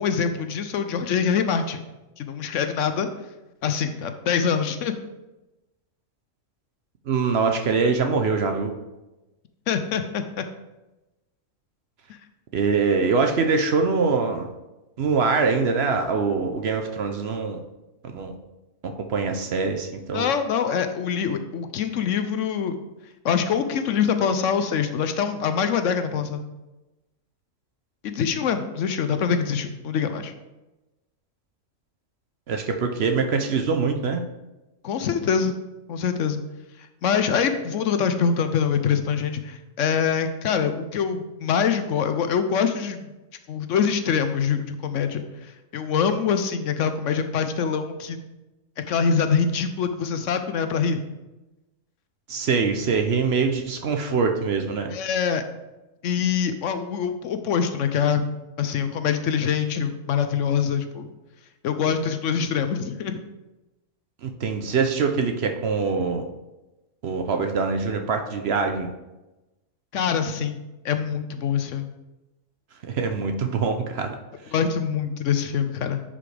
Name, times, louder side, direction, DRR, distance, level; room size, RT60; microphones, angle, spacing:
voice 1, 0.0-1.8 2.2-3.1 3.6-4.9 9.7-10.4 20.1-22.7 23.2-26.4 28.0-30.3 34.8-35.5 35.9-36.4 37.0-43.1 43.5-48.2 48.9-51.0 54.9-55.4 56.0-58.2 58.6-61.1 61.6-63.2 69.9-70.6 70.8-71.9 74.5-76.0, left 7 dB, 70° left, 9 dB, 0.9 m, -24 dB
voice 2, 7.1-8.7 12.5-14.5 15.0-17.6 18.0-18.3 18.8-20.3 32.5-34.2 52.3-54.9 64.2-66.3 67.0-68.9 72.8-74.2, right 4 dB, 55° right, 5 dB, 0.8 m, -24 dB
10.0 x 5.3 x 3.3 m, 1.0 s
omnidirectional pair, 1.4 m